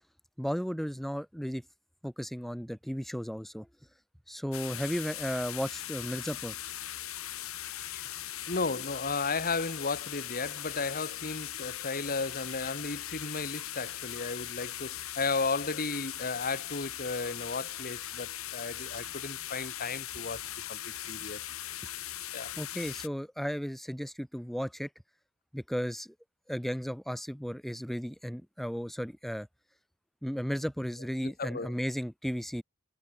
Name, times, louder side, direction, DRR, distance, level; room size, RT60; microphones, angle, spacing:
voice 1, 0.4-1.6 2.0-3.7 4.3-6.6 22.6-24.9 25.5-26.1 26.5-29.5 30.2-32.6, equal, ahead, 1.2 m, -34 dB
sound 1, 4.5-23.1, left 12 dB, 75° left, 3.6 m, -40 dB
voice 2, 7.6-8.2 8.4-20.4 20.7-21.4 22.3-22.6 31.2-31.7, left 4 dB, 45° left, 1.9 m, -34 dB
head